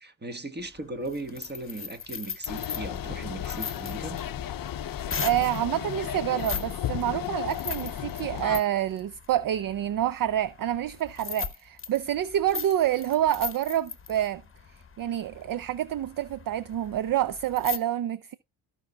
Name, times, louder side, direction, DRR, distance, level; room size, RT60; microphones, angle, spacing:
voice 1, 0.0-4.2, right 2 dB, 20° right, 1.3 m, -37 dB
sound 1, 0.6-5.6 6.3-6.7 7.0-17.8, left 6 dB, 25° left, 1.0 m, -39 dB
sound 2, 2.5-8.6, left 10 dB, 45° left, 0.6 m, -34 dB
voice 2, 5.2-14.4 15.0-18.4, right 12 dB, 45° right, 0.5 m, -27 dB
15.0 x 5.5 x 2.3 m
cardioid pair, 95°, 47 cm